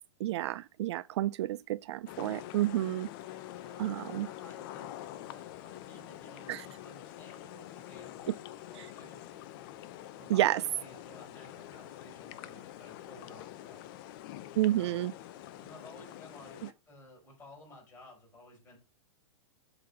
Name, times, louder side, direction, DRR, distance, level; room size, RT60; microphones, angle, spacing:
voice 1, 0.2-3.1 3.8-4.3 6.5-6.6 10.3-10.6 14.6-15.1, right 14 dB, 60° right, 0.4 m, -30 dB
sound 1, 2.1-16.7, left 13 dB, 45° left, 0.7 m, -46 dB
voice 2, 3.5-9.6 10.2-13.9 14.6-15.1 15.6-18.8, left 1 dB, 15° left, 4.9 m, -55 dB
7.7 x 4.1 x 5.5 m
hypercardioid pair, 140°, 16 cm